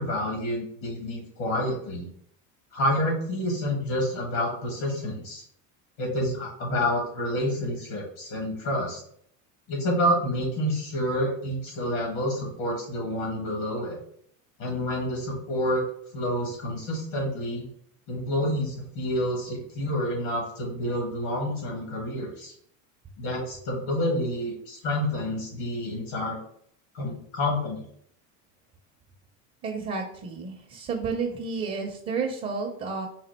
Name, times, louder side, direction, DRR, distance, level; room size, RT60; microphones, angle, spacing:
voice 1, 0.0-2.1 2.7-5.4 6.0-9.0 9.7-14.0 14.6-15.8 16.1-17.6 18.1-22.5 23.2-26.4 26.9-27.8, equal, 70° left, -2 dB, 1.5 m, -28 dB
voice 2, 29.6-33.1, right 4 dB, 20° right, 1 dB, 0.5 m, -31 dB
4.1 x 2.4 x 4.2 m, 0.66 s
supercardioid pair, 135°, 40 cm